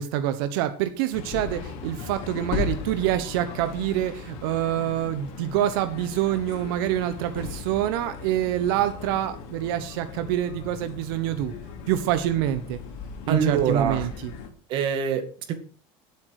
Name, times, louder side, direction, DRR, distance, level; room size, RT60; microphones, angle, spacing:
voice 1, 0.0-11.5 11.9-12.8 13.3-14.3, right 12 dB, 85° right, 10 dB, 1.2 m, -26 dB
sound 1, 1.1-14.5, left 6 dB, 65° left, 2.8 m, -37 dB
voice 2, 13.3-14.1 14.7-15.5, right 7 dB, 45° right, 7 dB, 2.3 m, -25 dB
17.0 x 8.4 x 5.0 m, 0.39 s
cardioid pair, 170°, 12 cm